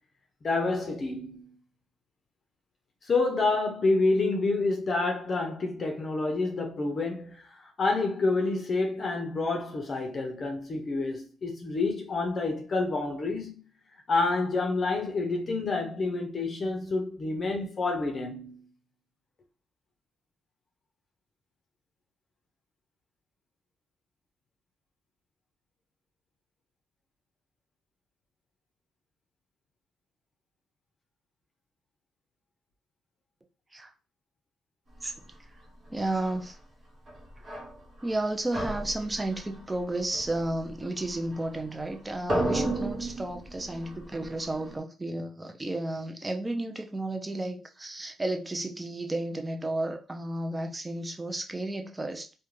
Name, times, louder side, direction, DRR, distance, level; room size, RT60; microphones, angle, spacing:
voice 1, 0.4-1.6 3.0-13.6 14.1-18.7, left 3 dB, 40° left, 0.5 m, -28 dB
voice 2, 35.9-36.6 38.0-52.3, right 2 dB, 15° right, 0.4 m, -32 dB
sound 1, 36.0-36.4 37.1-38.2 38.5-41.9 42.2-44.8, right 1 dB, 45° right, 0.9 m, -34 dB
2.4 x 2.1 x 3.1 m
cardioid pair, 90°, 0 cm